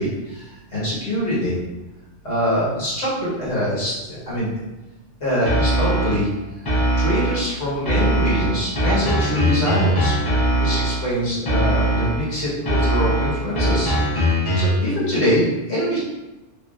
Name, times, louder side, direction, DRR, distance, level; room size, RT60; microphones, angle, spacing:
voice 1, 0.0-1.5 2.2-4.5 5.2-6.3 6.6-6.7 7.0-10.1 10.6-13.9 14.5-16.0, equal, 70° left, -9 dB, 1.5 m, -24 dB
sound 1, 5.5-6.3 6.7-7.5 7.9-11.1 11.5-12.3 12.7-14.9, right 1 dB, 25° left, 0.6 m, -20 dB
3.4 x 2.9 x 2.4 m, 1.1 s
omnidirectional pair, 1.2 m